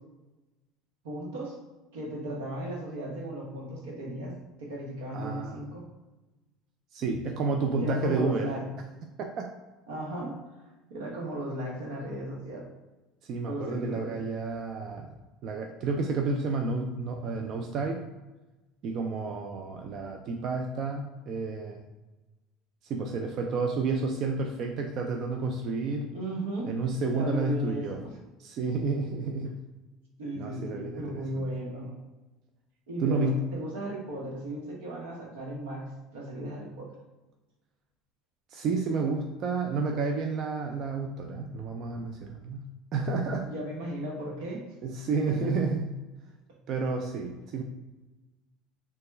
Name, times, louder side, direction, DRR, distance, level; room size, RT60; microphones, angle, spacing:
voice 1, 1.0-1.6 1.9-4.3 4.6-5.8 7.8-8.6 9.9-10.4 10.9-12.6 13.4-14.2 26.1-26.7 27.2-28.0 30.2-32.0 32.9-36.9 43.4-44.6, right 1 dB, 85° right, -2 dB, 0.9 m, -36 dB
voice 2, 5.1-5.6 6.9-8.5 9.4-9.5 13.2-15.1 15.4-18.0 18.8-21.8 22.8-26.1 26.7-28.0 28.4-29.6 30.4-31.4 33.0-33.4 38.5-42.6 42.9-43.5 44.8-45.9 46.7-47.6, right 3 dB, 55° right, 3 dB, 0.3 m, -30 dB
3.2 x 2.2 x 3.2 m, 1.1 s
supercardioid pair, 95°, 0 cm